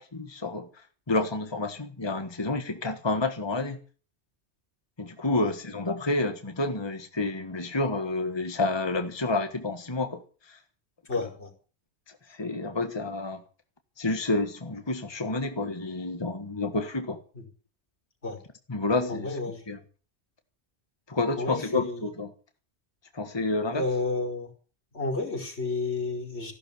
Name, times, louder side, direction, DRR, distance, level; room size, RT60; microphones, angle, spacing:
voice 1, 0.0-3.8 5.0-10.6 11.2-11.3 12.3-13.4 14.0-17.2 18.7-19.4 19.7-19.8 21.1-22.3 23.1-23.8, left 2 dB, 25° left, 1.5 m, -29 dB
voice 2, 11.1-11.5 17.3-17.4 18.2-18.4 19.1-19.6 21.4-22.0 23.7-24.5 24.9-26.5, left 3 dB, 80° left, 5.3 m, -31 dB
15.5 x 12.0 x 7.1 m
omnidirectional pair, 1.1 m